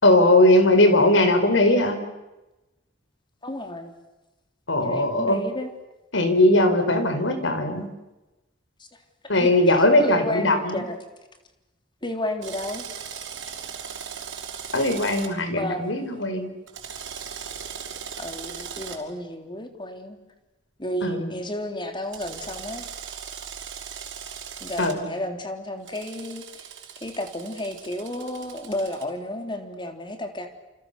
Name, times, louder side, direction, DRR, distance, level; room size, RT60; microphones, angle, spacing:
voice 1, 0.0-2.0 4.7-5.4 6.1-7.9 9.3-10.8 14.7-16.5 21.0-21.3 24.8-25.1, left 1 dB, 85° left, 8 dB, 4.8 m, -19 dB
voice 2, 3.4-3.9 4.8-5.7 9.3-11.0 12.0-12.9 15.5-15.9 18.2-20.2 20.8-22.9 24.6-26.7 27.0-30.5, left 1 dB, 25° left, 5 dB, 3.7 m, -32 dB
Drill, 12.4-15.3 16.7-19.0 22.1-24.9 25.9-29.0, right 7 dB, 80° right, 5.6 m, -38 dB
29.5 x 29.0 x 6.9 m, 1.0 s
head